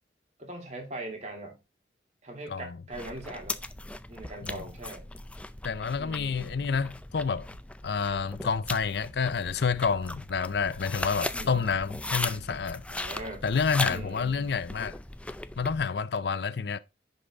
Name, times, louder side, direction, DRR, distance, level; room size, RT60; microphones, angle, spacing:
voice 1, 0.4-1.6 2.2-3.6 4.1-5.0 6.0-6.6 11.3-11.7 12.9-13.4 13.9-14.5, right 1 dB, 40° right, 3.0 m, -41 dB
sound 1, 2.9-15.9, left 2 dB, 5° left, 0.4 m, -38 dB
voice 2, 5.6-7.5 7.8-12.8 13.4-15.0 15.6-16.8, left 5 dB, 65° left, 0.5 m, -29 dB
10.0 x 5.5 x 3.7 m
head